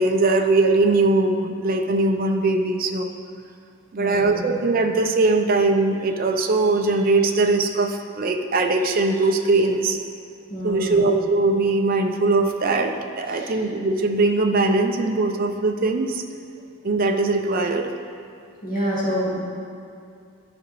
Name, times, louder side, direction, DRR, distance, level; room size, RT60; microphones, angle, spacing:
voice 1, 0.0-3.1 3.9-10.0 10.6-16.2 16.8-17.9, right 3 dB, 40° right, 4 dB, 0.4 m, -21 dB
voice 2, 4.0-4.5 10.5-11.1 13.3-13.6 18.6-19.4, equal, 40° left, -7 dB, 1.9 m, -27 dB
11.5 x 5.0 x 3.1 m, 2.5 s
head